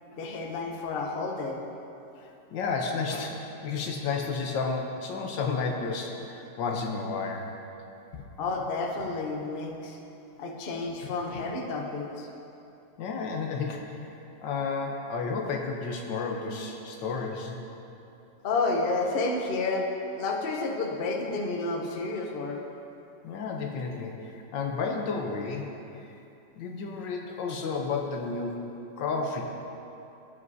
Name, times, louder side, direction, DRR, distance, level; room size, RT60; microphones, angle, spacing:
voice 1, 0.2-1.6 8.4-10.0 10.4-12.3 18.4-19.8 20.2-22.6, left 3 dB, 45° left, 1 dB, 0.7 m, -30 dB
voice 2, 2.2-7.5 13.0-17.6 23.2-25.7 26.0-26.1 26.5-28.6 29.0-29.4, left 4 dB, 85° left, 2 dB, 1.5 m, -32 dB
16.0 x 5.4 x 2.7 m, 2.8 s
omnidirectional pair, 1.9 m